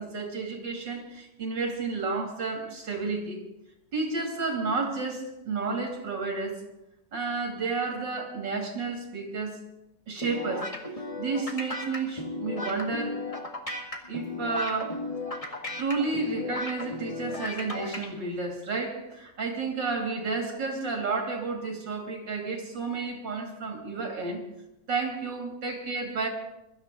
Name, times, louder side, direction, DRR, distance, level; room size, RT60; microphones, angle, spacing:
voice 1, 0.0-3.4 3.9-6.6 7.1-9.6 10.1-10.7 11.2-13.3 14.1-15.0 15.8-24.4 24.9-26.3, right 4 dB, 90° right, 3.5 m, -31 dB
sound 1, 10.2-18.1, left 2 dB, 20° left, 1.8 m, -35 dB
22.0 x 12.5 x 3.8 m
omnidirectional pair, 1.9 m